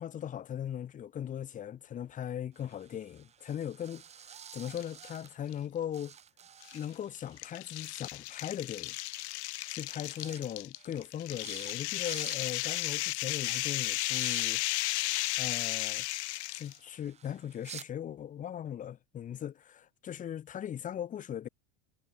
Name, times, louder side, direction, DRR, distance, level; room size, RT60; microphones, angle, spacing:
voice 1, 0.0-4.0 4.5-6.1 6.7-8.9 9.7-14.6 15.4-16.1 16.5-21.5, left 10 dB, 20° left, 6.1 m, -39 dB
sound 1, 2.5-5.7 5.9-7.4 8.8-8.9 9.2-9.4 9.7-10.4 10.7-11.1 11.4-11.7 12.0-12.4 12.8-13.0 13.4-13.6 14.0-14.5 15.6-17.9, right 8 dB, 20° right, 3.7 m, -51 dB
sound 2, 4.7-5.1 5.5-5.6 6.6-16.8, left 19 dB, 70° left, 4.5 m, -34 dB
supercardioid pair, 175°, 35 cm